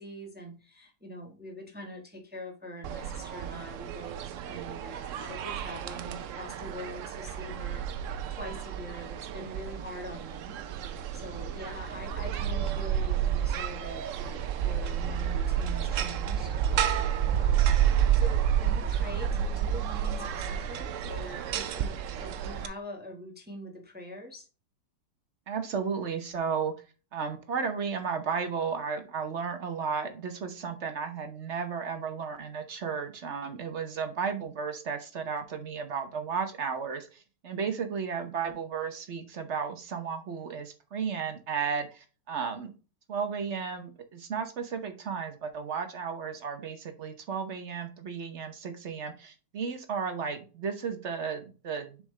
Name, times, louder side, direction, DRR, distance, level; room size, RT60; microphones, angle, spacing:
voice 1, 0.0-10.5 11.1-16.5 17.3-24.5, equal, 5° right, 2 dB, 1.0 m, -44 dB
sound 1, 2.8-22.7, right 9 dB, 80° right, 0.7 m, -30 dB
voice 2, 25.5-26.7 27.1-42.7 43.1-52.0, right 6 dB, 50° right, 7 dB, 1.0 m, -34 dB
6.8 x 5.1 x 3.2 m, 0.34 s
omnidirectional pair, 2.0 m